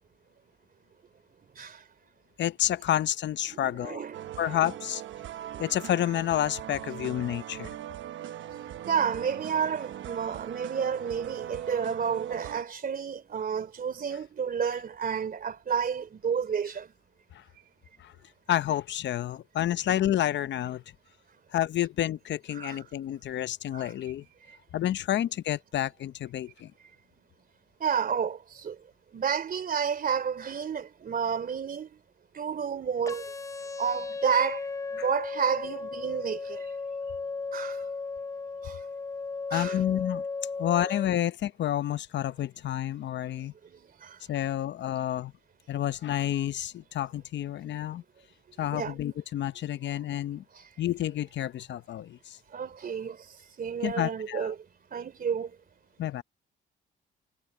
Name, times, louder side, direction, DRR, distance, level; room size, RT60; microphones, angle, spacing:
voice 1, 2.4-4.0 4.4-5.0 5.6-7.7 17.3-17.4 18.0-18.1 18.5-20.8 21.5-24.2 24.7-26.7 39.5-40.2 40.6-43.5 44.3-45.3 45.7-48.0 48.6-50.4 50.8-52.4 53.8-54.5 56.0-56.2, left 12 dB, 65° left, 0.8 m, -29 dB
voice 2, 3.5-4.7 8.9-16.9 22.5-22.8 23.7-23.9 27.8-28.8 29.1-31.9 32.3-33.3 33.8-34.6 34.9-36.7 37.5-37.8 38.6-38.8 39.5-39.8 40.9-41.0 43.6-44.2 48.7-48.9 50.5-50.6 52.5-53.2 53.6-54.6 54.9-55.5, right 7 dB, 45° right, 3.1 m, -31 dB
sound 1, 4.1-12.6, right 11 dB, 75° right, 1.0 m, -40 dB
sound 2, 33.1-41.1, left 4 dB, 15° left, 0.6 m, -35 dB
cardioid pair, 90°, 20 cm